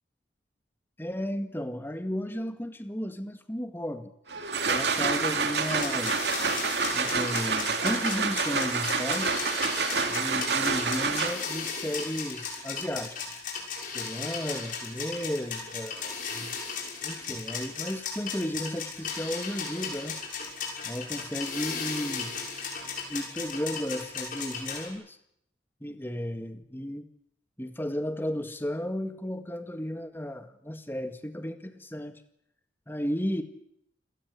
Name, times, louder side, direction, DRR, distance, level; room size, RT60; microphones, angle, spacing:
voice 1, 1.0-4.1 4.6-6.3 6.9-9.5 10.1-13.4 13.9-16.5 17.0-20.2 20.8-22.3 23.1-25.2 25.8-27.1 27.6-32.2 32.9-33.4, equal, 10° left, 8 dB, 2.0 m, -34 dB
sound 1, 4.3-11.6, right 4 dB, 65° right, 2.9 m, -28 dB
sound 2, 5.6-24.9, left 5 dB, 50° left, 6.4 m, -36 dB
28.0 x 18.0 x 8.3 m, 0.73 s
head